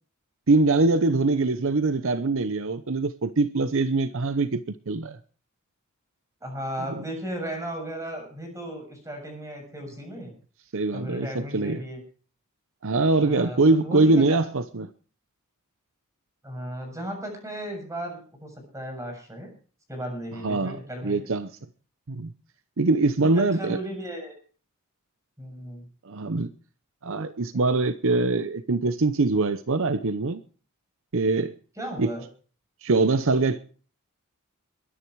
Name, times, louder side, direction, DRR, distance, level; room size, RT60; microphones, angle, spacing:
voice 1, 0.5-5.2 10.7-11.8 12.8-14.9 20.4-21.5 22.1-22.3 22.8-23.8 26.0-26.5 27.0-30.4 31.1-31.6 32.0-32.1 32.8-33.6, right 3 dB, 60° right, 0.8 m, -23 dB
voice 2, 6.4-10.3 10.9-12.0 13.2-14.5 16.4-19.5 19.9-21.3 23.2-24.3 25.4-25.9 27.5-27.6 31.8-32.3, right 1 dB, 15° right, 6.9 m, -35 dB
22.0 x 10.5 x 4.7 m
head